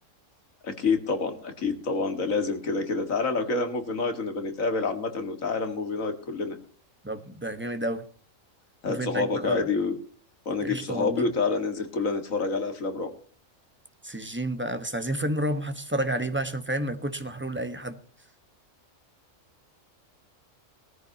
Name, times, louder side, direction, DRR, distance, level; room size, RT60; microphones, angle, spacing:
voice 1, 0.6-6.6 8.8-9.9 10.5-13.1, left 4 dB, 90° left, 2.3 m, -28 dB
voice 2, 7.0-8.0 8.9-9.7 10.6-11.3 14.0-18.0, right 1 dB, 10° right, 1.2 m, -30 dB
19.5 x 14.0 x 2.9 m
omnidirectional pair, 1.4 m